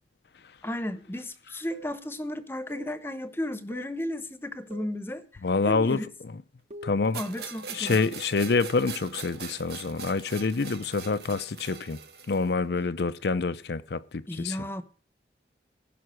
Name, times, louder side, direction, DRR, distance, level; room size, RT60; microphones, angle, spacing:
voice 1, 0.6-6.1 7.1-8.0 14.3-14.8, left 1 dB, 15° left, 0.9 m, -34 dB
sound 1, 1.7-2.0 2.7-3.0 3.7-4.0 4.7-5.0 5.7-6.0 6.7-7.0, right 4 dB, 40° right, 1.1 m, -45 dB
voice 2, 5.4-6.3 6.8-7.2 7.7-12.0 12.3-14.7, left 4 dB, 70° left, 0.6 m, -27 dB
sound 2, 7.1-12.5, right 6 dB, 70° right, 1.4 m, -41 dB
16.0 x 5.9 x 6.3 m
head